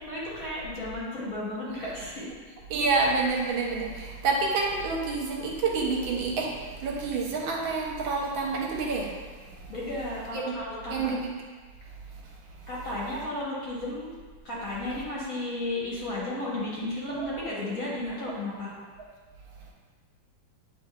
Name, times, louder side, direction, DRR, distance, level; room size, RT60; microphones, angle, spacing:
voice 1, 0.0-2.3 9.7-11.0 12.7-14.1 14.4-18.7, left 1 dB, 55° left, -6 dB, 1.2 m, -33 dB
voice 2, 2.7-9.1 9.5-9.7 10.3-10.5 10.9-11.3 17.2-17.3, right 4 dB, 85° right, -2 dB, 1.5 m, -28 dB
7.8 x 3.0 x 2.2 m, 1.5 s
omnidirectional pair, 2.2 m